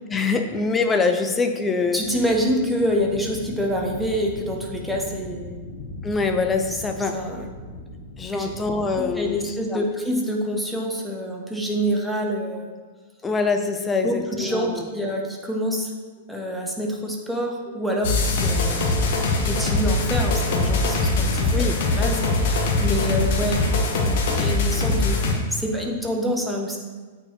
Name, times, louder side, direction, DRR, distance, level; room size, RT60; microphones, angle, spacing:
voice 1, 0.1-2.0 6.0-7.1 8.2-9.9 13.2-14.8 21.5-21.8, left 4 dB, 15° left, 6 dB, 0.6 m, -24 dB
voice 2, 1.9-5.6 7.1-7.4 8.3-8.5 8.9-12.7 14.0-15.9 16.3-23.6 24.3-26.8, equal, ahead, -1 dB, 1.0 m, -27 dB
sound 1, 2.0-9.4, left 2 dB, 80° left, 1.1 m, -38 dB
sound 2, 18.0-25.3, left 2 dB, 55° left, 1.0 m, -22 dB
8.6 x 4.4 x 3.1 m, 1.4 s
figure-of-eight pair, 100°, 0 cm